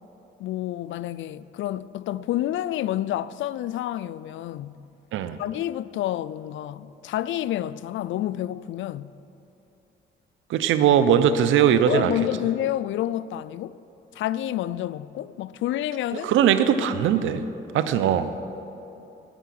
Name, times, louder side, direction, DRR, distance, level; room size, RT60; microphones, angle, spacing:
voice 1, 0.4-4.9 5.4-9.1 11.9-13.8 14.1-16.3, left 13 dB, 75° left, 0.4 m, -29 dB
voice 2, 10.5-12.1 16.1-17.5 17.7-18.3, right 9 dB, 80° right, 0.8 m, -20 dB
10.0 x 9.3 x 9.9 m
cardioid pair, 90°, 20 cm